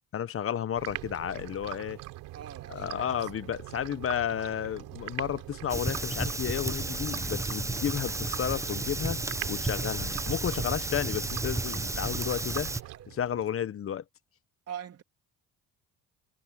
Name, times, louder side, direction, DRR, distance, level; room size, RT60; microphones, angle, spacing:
voice 1, 0.1-2.0 2.7-9.2 9.5-12.7 13.1-14.0, left 9 dB, 45° left, 0.9 m, -32 dB
sound 1, 0.8-13.5, right 17 dB, 85° right, 3.2 m, -42 dB
voice 2, 2.3-3.3 12.8-13.1 14.7-15.0, right 9 dB, 50° right, 3.2 m, -43 dB
Fire, 5.7-12.8, right 2 dB, 10° right, 0.8 m, -32 dB
supercardioid pair, 90°, 32 cm